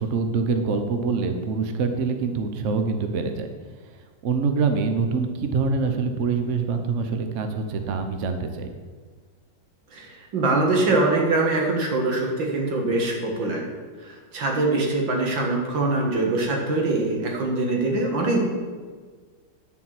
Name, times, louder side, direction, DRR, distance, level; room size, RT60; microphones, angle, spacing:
voice 1, 0.0-3.5 4.2-8.7, right 4 dB, 50° right, 6 dB, 1.0 m, -25 dB
voice 2, 9.9-13.6 14.1-18.4, right 2 dB, 90° right, 0 dB, 2.3 m, -23 dB
11.0 x 4.5 x 7.7 m, 1.5 s
omnidirectional pair, 2.0 m